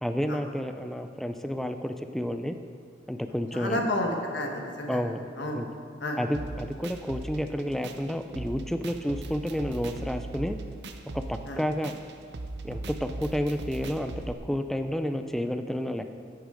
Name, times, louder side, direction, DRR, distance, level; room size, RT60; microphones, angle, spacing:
voice 1, 0.0-2.5 3.1-3.8 4.9-5.2 5.5-5.7 6.2-10.6 11.1-11.9 12.6-16.1, equal, ahead, 8 dB, 0.4 m, -30 dB
voice 2, 3.5-5.0 5.4-5.6 6.0-6.2 11.5-11.6, left 1 dB, 70° left, 1 dB, 1.3 m, -30 dB
sound 1, 6.3-14.3, right 2 dB, 60° right, 0.6 m, -39 dB
9.8 x 8.2 x 4.9 m, 2.4 s
head